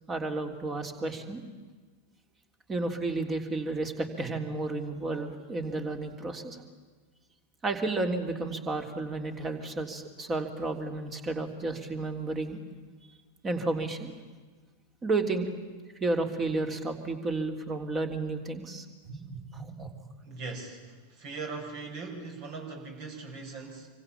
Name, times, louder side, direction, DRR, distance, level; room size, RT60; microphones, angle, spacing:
voice 1, 0.1-1.4 2.7-6.6 7.6-12.6 13.4-14.1 15.0-15.5 16.0-19.9, right 2 dB, 20° right, 6 dB, 3.4 m, -32 dB
voice 2, 20.2-23.9, right 3 dB, 45° right, 3 dB, 5.7 m, -40 dB
27.0 x 24.5 x 8.8 m, 1.4 s
figure-of-eight pair, 90°, 0 cm